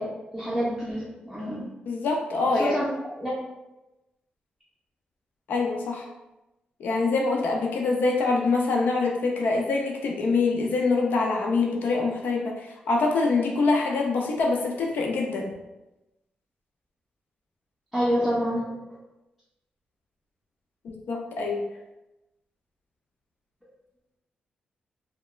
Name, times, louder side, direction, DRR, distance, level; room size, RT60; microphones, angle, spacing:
voice 1, 0.0-1.7 2.5-2.9 3.2-3.3 17.9-18.8, equal, 5° left, -8 dB, 0.5 m, -27 dB
voice 2, 1.9-2.7 5.5-6.1 6.8-15.5 20.8-21.6, left 3 dB, 80° left, 0 dB, 0.4 m, -25 dB
2.9 x 2.1 x 2.3 m, 0.98 s
wide cardioid pair, 135°, 3 cm